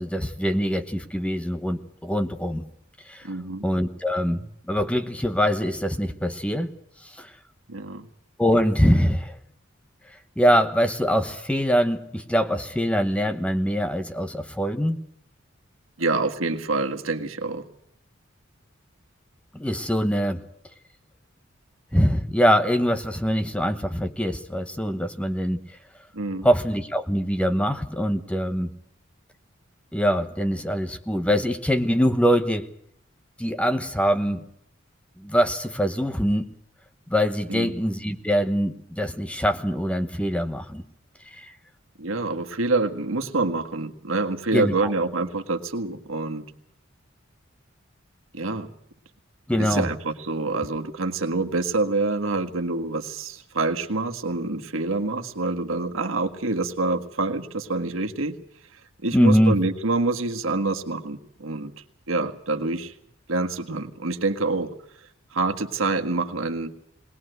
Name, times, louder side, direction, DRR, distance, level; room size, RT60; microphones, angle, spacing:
voice 1, 0.0-2.6 3.1-3.3 3.6-6.7 7.0-7.3 8.4-9.4 10.4-15.0 19.5-20.4 21.9-25.6 26.4-28.7 29.9-32.7 33.4-34.4 35.2-36.5 37.1-40.8 41.4-41.5 44.5-44.9 49.5-49.9 59.1-59.6, equal, 5° left, 9 dB, 1.1 m, -23 dB
voice 2, 3.2-3.6 7.7-8.1 16.0-17.6 26.1-26.5 37.5-37.8 42.0-46.4 48.3-48.7 49.6-58.4 59.0-61.7 62.1-62.9 63.3-64.7 65.3-66.7, right 3 dB, 80° right, 6 dB, 1.7 m, -26 dB
20.5 x 20.0 x 8.0 m, 0.71 s
head